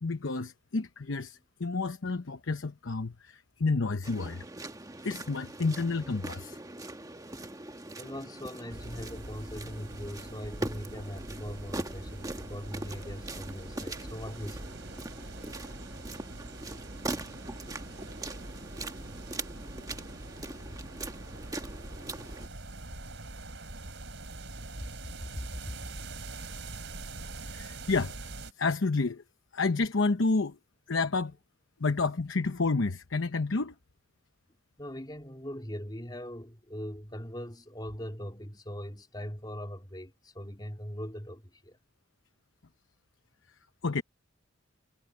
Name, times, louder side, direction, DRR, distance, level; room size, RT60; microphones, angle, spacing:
voice 1, 0.0-4.4 5.0-6.6 27.5-28.3 28.6-29.2 29.5-30.6 30.9-31.3 31.8-33.7 43.8-44.0, left 3 dB, 85° left, 0.9 m, -30 dB
sound 1, 4.0-22.5, right 2 dB, 20° right, 1.2 m, -41 dB
voice 2, 8.0-14.8 20.7-20.8 25.2-25.8 34.8-41.8, equal, 20° left, 3.4 m, -41 dB
sound 2, 8.7-28.5, right 2 dB, 70° right, 3.7 m, -44 dB
head